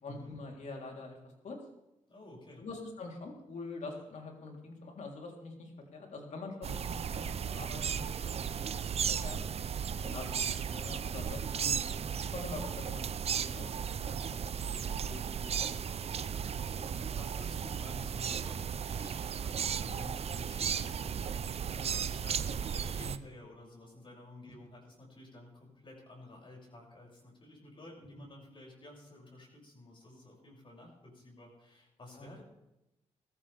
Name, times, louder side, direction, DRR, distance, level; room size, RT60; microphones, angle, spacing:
voice 1, 0.0-1.6 2.6-8.7 9.1-9.4 10.0-11.9 12.2-13.1 13.4-13.7 14.0-15.8 23.0-23.2 28.1-28.3 32.1-32.3, left 3 dB, 65° left, 1 dB, 3.6 m, -45 dB
voice 2, 2.1-2.6 13.3-13.7 16.6-32.4, left 1 dB, 40° left, -2 dB, 7.0 m, -52 dB
sound 1, 6.6-23.2, right 7 dB, 50° right, 0.6 m, -35 dB
19.0 x 14.5 x 3.5 m, 0.92 s
cardioid pair, 65°, 13 cm